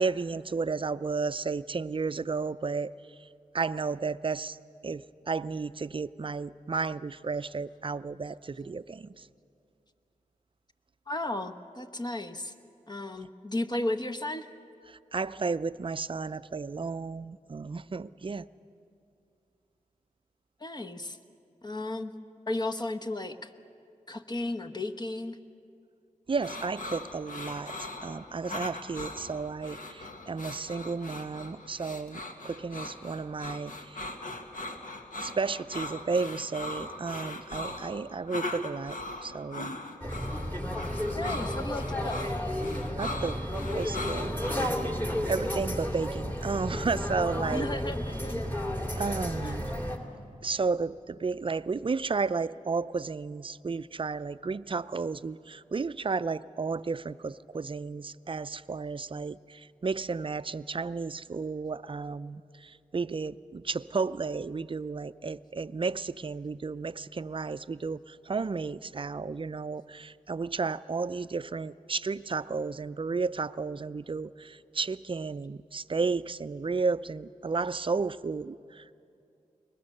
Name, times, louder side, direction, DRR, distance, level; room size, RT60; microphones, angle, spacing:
voice 1, 0.0-3.3 3.5-4.6 4.8-9.3 14.9-18.5 26.3-27.7 28.0-34.1 35.2-39.7 43.0-43.4 43.7-44.4 45.3-47.7 49.0-49.7 50.4-78.9, right 4 dB, 35° right, 15 dB, 0.5 m, -33 dB
voice 2, 11.1-12.5 12.9-14.5 20.6-21.2 21.6-22.1 22.5-23.5 24.1-25.4 41.1-42.4 47.5-48.5 49.4-49.5, left 1 dB, 30° left, 8 dB, 1.1 m, -34 dB
sound 1, 26.4-44.6, left 2 dB, 70° left, 1.7 m, -39 dB
sound 2, 40.0-50.0, equal, 15° left, 2.6 m, -32 dB
22.5 x 20.0 x 6.6 m, 2.5 s
cardioid pair, 50°, 14 cm